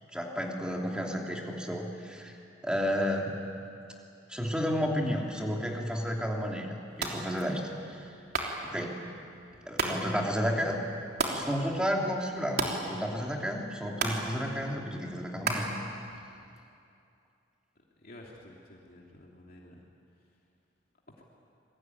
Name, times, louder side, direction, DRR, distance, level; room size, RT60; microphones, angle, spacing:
voice 1, 0.1-2.4 2.6-3.4 4.3-8.1 8.6-9.0 9.7-10.8 11.3-15.7, equal, 5° right, 0 dB, 2.9 m, -32 dB
sound 1, 6.9-16.6, right 3 dB, 55° right, 3.4 m, -37 dB
voice 2, 18.0-19.7, left 1 dB, 50° left, -2 dB, 2.8 m, -51 dB
27.0 x 21.0 x 9.5 m, 2.6 s
head